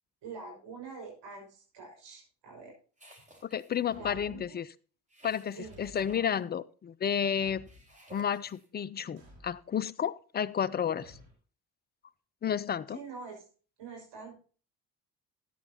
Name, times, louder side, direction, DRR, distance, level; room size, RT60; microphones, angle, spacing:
voice 1, 0.2-2.7 4.0-4.6 5.5-5.9 12.9-13.4 13.8-14.4, right 4 dB, 60° right, -1 dB, 6.0 m, -45 dB
sound 1, 3.0-3.9 5.1-6.4 7.7-8.7, right 1 dB, 15° right, 4.4 m, -55 dB
voice 2, 3.5-4.7 5.2-7.7 8.1-11.2 12.4-13.0, left 8 dB, 20° left, 18 dB, 0.4 m, -31 dB
Thump thud, 3.9-4.5 5.6-6.2 7.4-7.9 9.2-9.6 11.0-11.3, left 1 dB, 80° right, 4.9 m, -53 dB
13.5 x 9.9 x 2.9 m, 0.39 s
hypercardioid pair, 55°, 48 cm